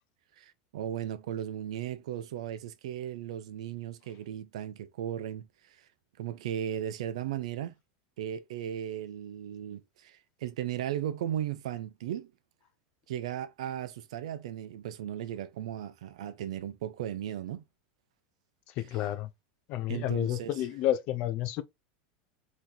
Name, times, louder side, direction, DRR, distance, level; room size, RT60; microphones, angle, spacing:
voice 1, 0.4-5.9 6.2-7.8 8.2-12.3 13.1-17.6 19.9-20.5, right 10 dB, 85° right, 0.8 m, -36 dB
voice 2, 18.8-19.3 19.7-21.6, left 13 dB, 35° left, 0.5 m, -30 dB
4.3 x 3.2 x 3.9 m
supercardioid pair, 180°, 3 cm